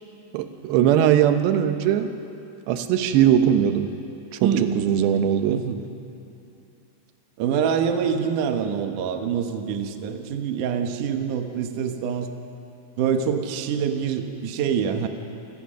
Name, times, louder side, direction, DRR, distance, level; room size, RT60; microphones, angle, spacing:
voice 1, 0.3-2.1 2.7-3.9 4.4-5.6, right 10 dB, 90° right, 8 dB, 3.1 m, -20 dB
voice 2, 4.4-4.7 5.5-5.8 7.4-12.3 13.0-15.1, right 7 dB, 65° right, 5 dB, 2.3 m, -25 dB
27.5 x 18.5 x 6.5 m, 2.8 s
omnidirectional pair, 4.8 m